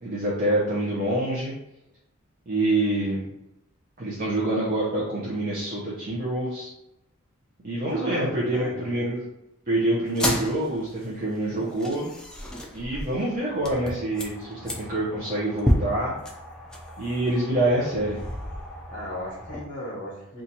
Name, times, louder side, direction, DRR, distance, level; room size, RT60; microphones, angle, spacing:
voice 1, 0.0-1.5 2.5-3.2 4.0-6.7 7.6-9.2 9.7-12.1 12.7-16.1 17.0-18.2, right 1 dB, 40° right, -7 dB, 0.7 m, -26 dB
voice 2, 7.9-9.0 18.9-20.4, equal, 40° left, -4 dB, 1.0 m, -36 dB
sound 1, 10.1-19.6, equal, 5° left, 0.4 m, -32 dB
2.7 x 2.4 x 4.2 m, 0.86 s
head